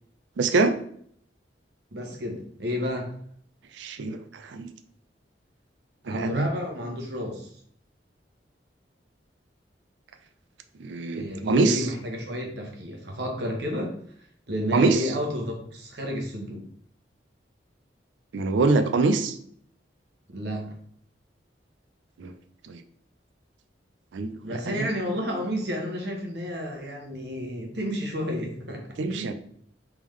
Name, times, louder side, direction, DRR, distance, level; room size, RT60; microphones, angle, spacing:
voice 1, 0.4-0.7 3.8-4.7 6.1-6.5 10.8-11.9 14.7-15.0 18.3-19.4 22.2-22.3 22.7-22.8 24.1-24.9 29.0-29.3, right 3 dB, 85° right, 9 dB, 0.4 m, -24 dB
voice 2, 1.9-3.1 6.0-7.5 11.1-13.9 14.5-16.6 20.3-20.7 24.4-28.8 29.1-29.3, equal, 65° right, 1 dB, 1.0 m, -31 dB
3.6 x 3.5 x 3.1 m, 0.63 s
head